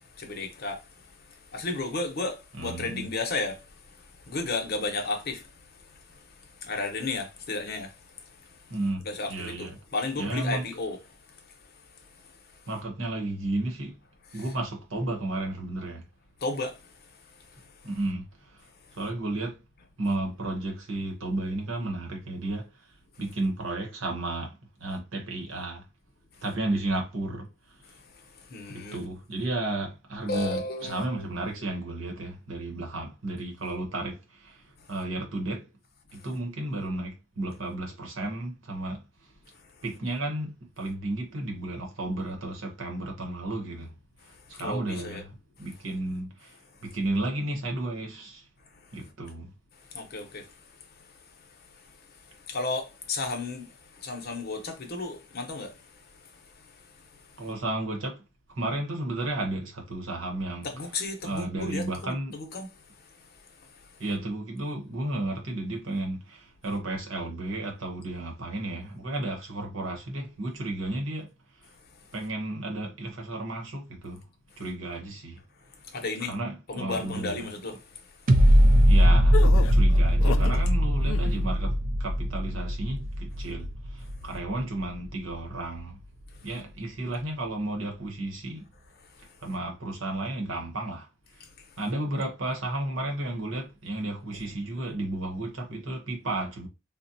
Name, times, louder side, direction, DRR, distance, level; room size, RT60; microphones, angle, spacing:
voice 1, 0.0-8.7 9.0-11.0 14.3-14.4 16.4-16.9 17.5-17.6 28.2-29.0 30.3-31.5 44.5-45.2 49.9-50.5 51.0-51.1 51.8-51.9 52.4-57.3 60.6-62.7 63.7-63.9 75.9-76.3 76.7-77.9 78.6-78.7 79.4-79.5, left 3 dB, 50° left, 0.8 m, -34 dB
voice 2, 2.5-3.1 8.7-9.0 9.3-9.8 10.2-10.7 12.7-13.9 14.3-16.0 17.8-18.3 19.0-19.6 20.0-22.7 23.2-25.8 26.4-27.5 28.7-34.6 34.9-35.7 36.2-39.0 39.8-43.9 44.5-45.3 45.6-46.5 46.8-48.4 48.9-49.5 57.4-58.2 58.6-60.7 61.2-62.3 64.0-71.3 72.1-74.2 74.6-75.4 76.3-77.4 78.8-79.4 79.7-81.7 82.0-83.7 83.9-86.0 86.4-88.7 89.4-91.1 91.8-96.7, right 2 dB, 75° right, 1.0 m, -33 dB
sound 1, 78.3-85.3 85.8-85.9, equal, 45° right, 0.4 m, -21 dB
sound 2, 79.3-80.6 81.0-81.5, left 6 dB, 70° left, 0.3 m, -32 dB
3.8 x 2.1 x 2.7 m
head